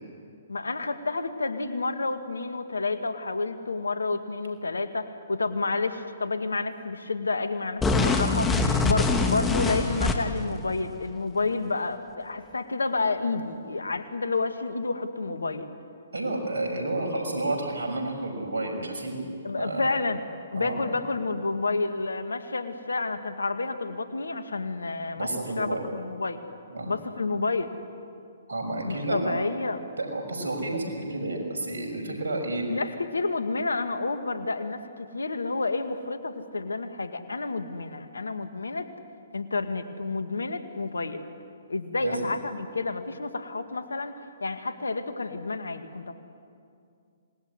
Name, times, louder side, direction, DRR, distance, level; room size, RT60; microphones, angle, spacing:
voice 1, 0.5-15.7 19.4-20.2 20.5-25.3 25.6-26.4 26.9-27.7 28.8-29.8 32.7-38.9 39.3-41.2 41.7-44.1 44.4-46.1, left 3 dB, 85° left, 9 dB, 2.0 m, -30 dB
sound 1, 7.8-10.5, left 3 dB, 10° left, 2.4 m, -24 dB
voice 2, 16.1-19.2 19.6-19.8 20.6-21.0 25.1-25.8 26.7-26.9 28.5-29.4 30.0-32.6 42.0-42.3, right 2 dB, 75° right, 1 dB, 6.1 m, -30 dB
26.0 x 19.5 x 9.8 m, 2.4 s
figure-of-eight pair, 130°, 0 cm